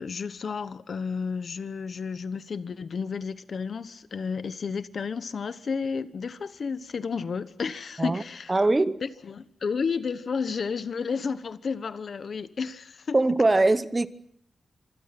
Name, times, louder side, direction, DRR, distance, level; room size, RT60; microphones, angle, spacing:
voice 1, 0.0-8.5 9.0-13.2, left 5 dB, 60° left, 1.2 m, -32 dB
voice 2, 8.5-9.0 13.1-14.1, right 2 dB, 25° right, 0.9 m, -21 dB
27.0 x 24.5 x 6.0 m
wide cardioid pair, 115°, 0 cm